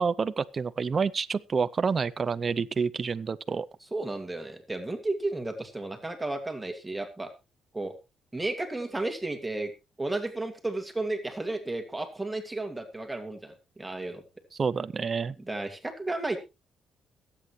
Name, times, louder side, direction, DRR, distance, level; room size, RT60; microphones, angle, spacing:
voice 1, 0.0-3.7 14.6-15.3, right 5 dB, 40° right, 0.5 m, -28 dB
voice 2, 3.9-7.3 7.7-7.9 8.3-9.7 10.0-14.2 15.5-16.4, right 2 dB, 10° right, 2.2 m, -33 dB
22.0 x 8.5 x 3.1 m
cardioid pair, 90°, 0 cm